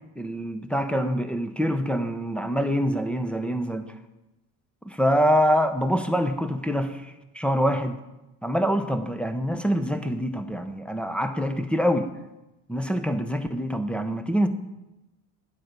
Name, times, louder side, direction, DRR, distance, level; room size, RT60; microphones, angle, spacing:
voice 1, 0.2-3.9 4.9-8.0 8.4-12.1 12.7-14.5, equal, ahead, 9 dB, 0.7 m, -25 dB
9.5 x 7.7 x 5.3 m, 0.98 s
cardioid pair, 110°, 45 cm